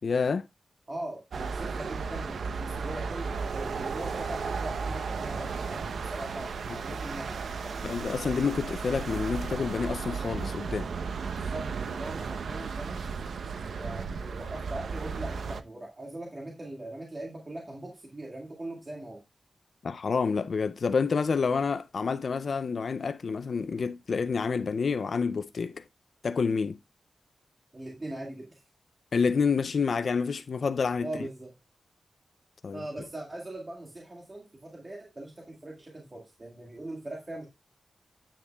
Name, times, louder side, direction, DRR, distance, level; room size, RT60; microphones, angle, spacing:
voice 1, 0.0-0.5 6.7-6.8 7.8-10.9 19.8-25.8 26.2-26.8 29.1-31.1 32.6-32.8, left 5 dB, 55° left, 0.4 m, -28 dB
voice 2, 0.9-6.5 6.8-7.9 11.3-13.1 13.8-19.2 27.7-28.6 31.0-31.5 32.7-37.5, right 1 dB, 25° right, 1.9 m, -41 dB
sound 1, 1.3-15.6, right 5 dB, 85° right, 0.7 m, -34 dB
10.0 x 8.8 x 2.3 m
wide cardioid pair, 170°, 0 cm